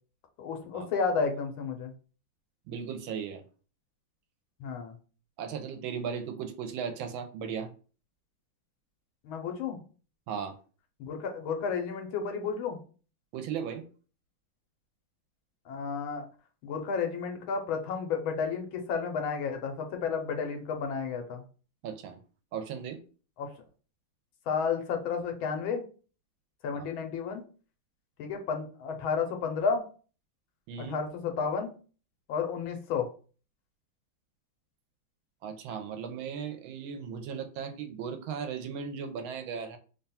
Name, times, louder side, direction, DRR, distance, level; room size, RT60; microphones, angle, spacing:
voice 1, 0.4-1.9 4.6-5.0 9.2-9.8 11.0-12.8 15.7-16.2 16.6-21.4 23.4-23.5 24.5-25.8 26.6-27.4 28.2-29.8 30.8-31.7 32.3-33.1, left 5 dB, 85° left, 1.6 m, -32 dB
voice 2, 2.7-3.4 5.4-7.7 10.3-10.6 13.3-13.8 21.8-22.2 22.5-23.0 30.7-30.9 35.4-39.8, right 7 dB, 80° right, 1.4 m, -36 dB
3.6 x 2.3 x 4.1 m
omnidirectional pair, 2.2 m